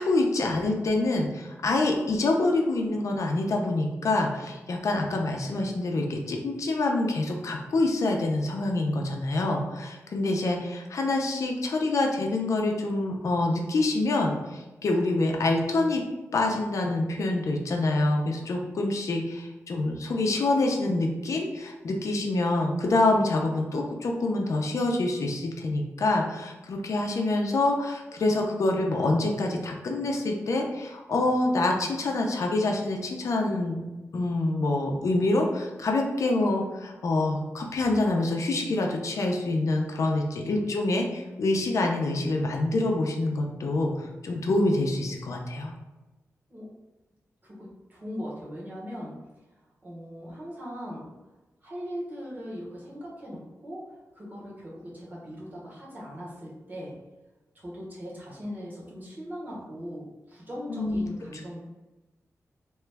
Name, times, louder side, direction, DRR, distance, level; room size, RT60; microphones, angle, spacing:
voice 1, 0.0-16.0 16.3-33.8 34.1-45.7 60.7-61.0 61.3-61.4, left 2 dB, 65° left, 1 dB, 0.5 m, -26 dB
voice 2, 47.4-49.1 49.8-51.1 51.6-56.9 57.5-61.6, equal, 35° right, -6 dB, 1.1 m, -39 dB
2.9 x 2.3 x 3.3 m, 1.1 s
wide cardioid pair, 120°, 6 cm